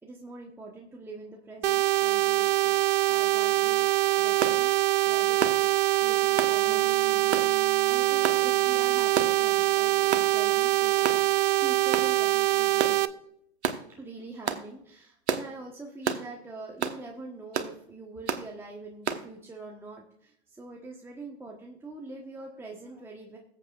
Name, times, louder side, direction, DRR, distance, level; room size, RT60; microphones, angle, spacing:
voice 1, 0.0-2.8 3.1-3.9 4.1-4.7 5.0-13.0 14.0-23.4, right 3 dB, 5° right, -1 dB, 1.2 m, -44 dB
sound 1, 1.6-13.1, right 15 dB, 55° right, 0.6 m, -24 dB
sound 2, 4.4-4.6 5.4-5.6 6.4-6.6 7.3-7.5 8.2-8.4 9.1-9.4 10.1-10.3 11.0-11.2 11.9-12.1 12.8-13.0 13.6-13.8 14.5-14.6 15.3-15.5 16.0-16.3 16.8-17.0 17.5-17.7 18.3-18.5 19.1-19.2, right 7 dB, 70° right, 1.2 m, -29 dB
sound 3, 6.7-11.2 11.5-12.9, right 7 dB, 25° right, 1.6 m, -50 dB
20.0 x 8.0 x 2.4 m, 0.71 s
figure-of-eight pair, 110°, 34 cm